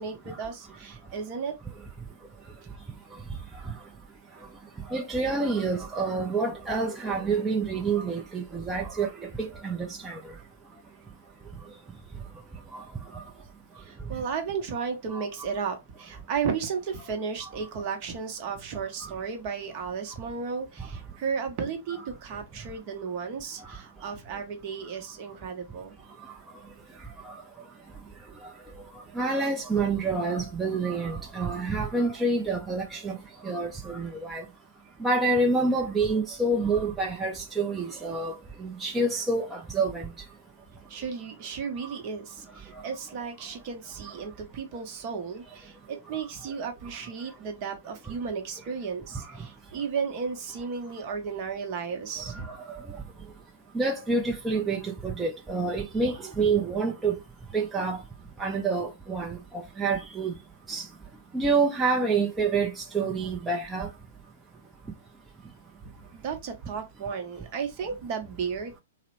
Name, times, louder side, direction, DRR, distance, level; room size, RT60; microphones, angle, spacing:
voice 1, 0.0-1.5 13.8-26.0 40.7-52.5 66.1-68.8, right 6 dB, 45° right, 0.8 m, -34 dB
voice 2, 4.9-9.1 9.4-10.2 15.1-15.2 29.2-33.1 33.4-34.4 35.0-38.3 38.6-40.1 53.7-57.1 57.5-58.0 58.4-59.4 59.8-60.3 60.7-60.8 61.3-63.9, right 3 dB, 10° right, 0.5 m, -27 dB
2.9 x 2.0 x 2.9 m
hypercardioid pair, 115°, 0 cm